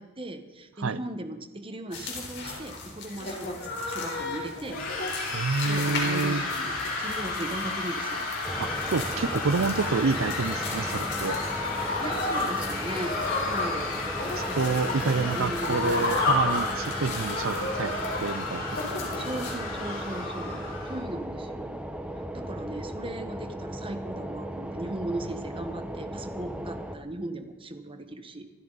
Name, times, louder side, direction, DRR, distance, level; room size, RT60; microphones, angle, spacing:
voice 1, 0.0-4.8 5.4-8.3 12.0-13.2 13.5-13.9 15.2-16.0 18.8-21.8 22.1-28.4, right 1 dB, 25° right, 8 dB, 1.2 m, -37 dB
sound 1, 1.9-19.6, left 3 dB, 55° left, 4.0 m, -33 dB
Crowd Screaming, 4.7-21.0, left 3 dB, 75° left, 6.7 m, -33 dB
voice 2, 5.3-6.4 8.6-11.4 14.4-18.8, right 4 dB, 75° right, 17 dB, 0.6 m, -28 dB
sound 2, 8.4-27.0, right 1 dB, 5° right, 1.0 m, -37 dB
25.0 x 13.0 x 4.0 m, 1.2 s
head